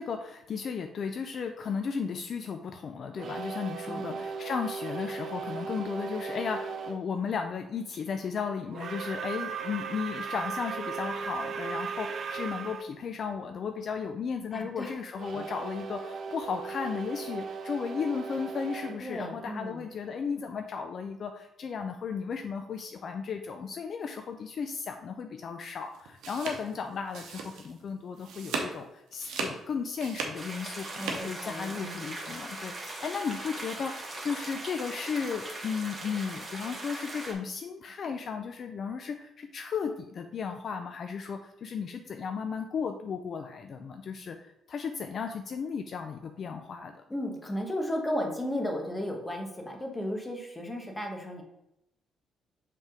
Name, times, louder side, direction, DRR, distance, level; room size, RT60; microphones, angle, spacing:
voice 1, 0.0-47.0, left 6 dB, 55° left, 6 dB, 0.4 m, -35 dB
sound 1, 3.1-7.0 8.7-12.8 15.2-20.0, right 5 dB, 55° right, 0.5 m, -37 dB
voice 2, 3.9-4.2 14.5-15.0 15.3-15.4 19.0-19.9 31.0-32.1 47.1-51.4, equal, 15° left, 2 dB, 1.2 m, -34 dB
sound 2, 25.9-27.8 28.1-28.8 29.1-31.2, right 4 dB, 85° right, 0.9 m, -36 dB
sound 3, 30.3-37.3, right 2 dB, 30° right, 1.5 m, -40 dB
5.3 x 3.6 x 5.0 m, 0.87 s
cardioid pair, 90°, 0 cm